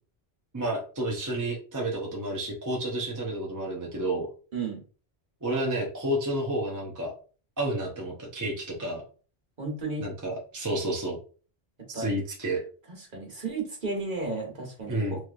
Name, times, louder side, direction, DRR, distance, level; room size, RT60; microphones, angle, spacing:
voice 1, 0.5-4.3 5.4-7.1 7.6-9.0 10.0-11.2 11.9-12.6 14.9-15.2, right 1 dB, 20° right, -1 dB, 0.6 m, -30 dB
voice 2, 9.6-10.0 11.9-12.1 12.9-15.2, right 3 dB, 50° right, -1 dB, 1.3 m, -33 dB
3.3 x 3.0 x 2.4 m, 0.38 s
omnidirectional pair, 1.1 m